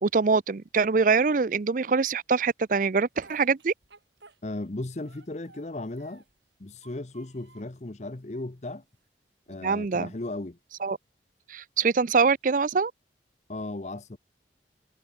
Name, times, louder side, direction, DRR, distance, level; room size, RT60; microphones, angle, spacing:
voice 1, 0.0-3.7 9.6-10.1 10.8-11.0 11.5-12.9, right 4 dB, 45° right, 0.5 m, -24 dB
Speech, 2.9-4.7 5.0-6.4 6.8-7.7 8.3-9.1, right 3 dB, 75° right, 6.6 m, -56 dB
voice 2, 4.4-6.2 6.6-8.8 9.5-10.6 13.5-14.2, left 2 dB, 40° left, 0.8 m, -36 dB
head